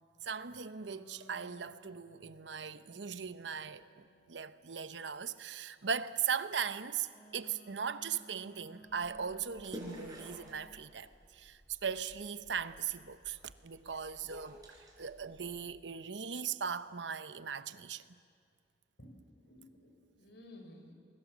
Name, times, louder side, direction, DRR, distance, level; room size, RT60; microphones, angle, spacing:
voice 1, 0.2-14.6 15.0-18.0, right 7 dB, 85° right, 0.9 m, -39 dB
sound 1, 0.8-4.8 7.1-10.8, right 2 dB, 20° left, 8.0 m, -60 dB
sound 2, 8.9-15.7, equal, 20° right, 5.0 m, -52 dB
voice 2, 19.4-20.9, left 1 dB, 75° left, 4.8 m, -54 dB
29.0 x 21.0 x 7.3 m
head